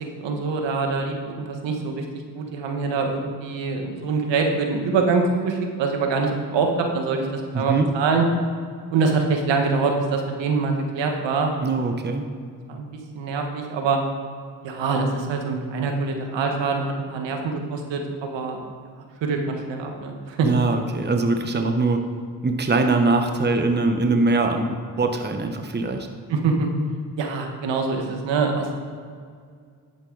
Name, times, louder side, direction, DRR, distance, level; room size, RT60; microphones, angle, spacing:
voice 1, 0.2-2.0 2.3-8.3 8.9-11.5 12.7-12.9 13.1-14.0 14.6-18.6 19.2-20.5 26.3-26.7 27.2-28.7, right 4 dB, 80° right, 3 dB, 1.5 m, -24 dB
voice 2, 7.5-7.9 11.6-12.2 20.4-22.0 22.4-26.1, right 3 dB, 25° right, 5 dB, 1.0 m, -22 dB
11.0 x 8.0 x 4.0 m, 2.1 s
cardioid pair, 65°, 43 cm